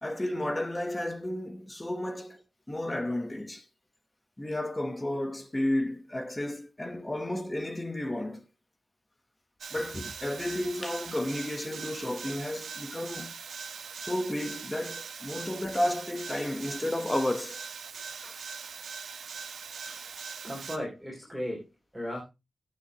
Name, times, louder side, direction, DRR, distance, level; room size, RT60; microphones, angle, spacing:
voice 1, 0.0-2.4 2.7-3.6 4.4-8.4 9.7-13.3 14.0-17.6 18.2-18.3, left 1 dB, 15° left, 1.0 m, -32 dB
sound 1, 9.6-20.8, right 6 dB, 75° right, 1.0 m, -41 dB
voice 2, 19.8-21.7 21.9-22.2, equal, 5° right, 3.2 m, -37 dB
16.5 x 7.3 x 2.9 m
wide cardioid pair, 170°, 0 cm